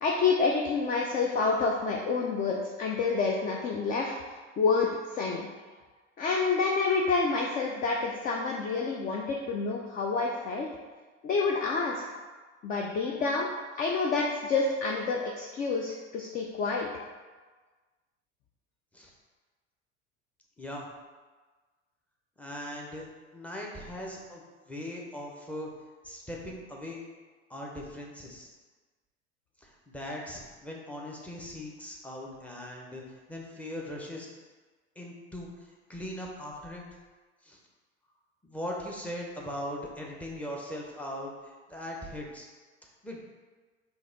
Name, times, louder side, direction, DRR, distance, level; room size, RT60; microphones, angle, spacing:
voice 1, 0.0-4.1 4.6-5.5 6.2-10.7 11.2-12.0 12.6-13.5 13.8-16.9, left 4 dB, 25° left, 0 dB, 0.4 m, -28 dB
voice 2, 20.6-20.9 22.4-23.0 23.3-25.7 26.0-27.0 27.5-28.5 29.6-34.3 35.0-36.8 37.4-37.6 38.4-42.5 43.0-43.2, left 1 dB, 5° left, -2 dB, 0.7 m, -40 dB
3.9 x 2.9 x 3.9 m, 1.4 s
figure-of-eight pair, 75°, 37 cm